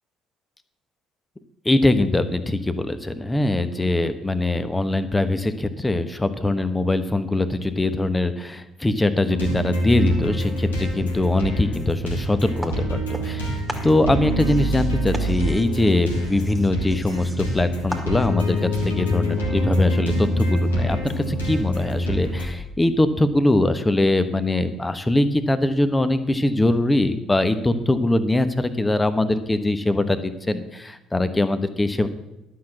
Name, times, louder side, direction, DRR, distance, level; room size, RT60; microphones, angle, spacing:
voice 1, 1.6-32.1, left 2 dB, 15° left, 11 dB, 1.1 m, -22 dB
sound 1, 9.3-22.5, equal, 80° left, 2.1 m, -25 dB
sound 2, 12.6-13.4 13.7-18.5, right 1 dB, 10° right, 1.9 m, -38 dB
11.5 x 6.0 x 7.8 m, 0.95 s
figure-of-eight pair, 50°, 0 cm